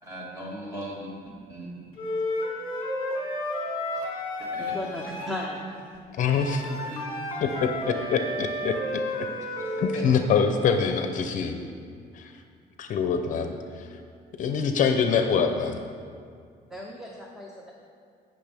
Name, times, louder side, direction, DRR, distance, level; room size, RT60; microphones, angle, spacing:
voice 1, 0.0-1.1 1.5-2.0 4.0-4.1 4.4-4.8 6.6-7.4 9.6-10.0, equal, 20° right, -5 dB, 2.0 m, -39 dB
Wind instrument woodwind instrument, 2.0-5.5 6.3-10.0, left 1 dB, 30° left, 1.6 m, -32 dB
voice 2, 4.6-5.6 16.7-17.7, left 1 dB, ahead, -2 dB, 0.7 m, -36 dB
voice 3, 6.2-6.6 7.4-7.7 8.1-9.3 9.8-11.6 12.1-12.3 12.8-13.9 14.4-15.8, left 6 dB, 50° left, 6 dB, 0.6 m, -25 dB
17.0 x 6.3 x 3.5 m, 2.2 s
cardioid pair, 180°, 17 cm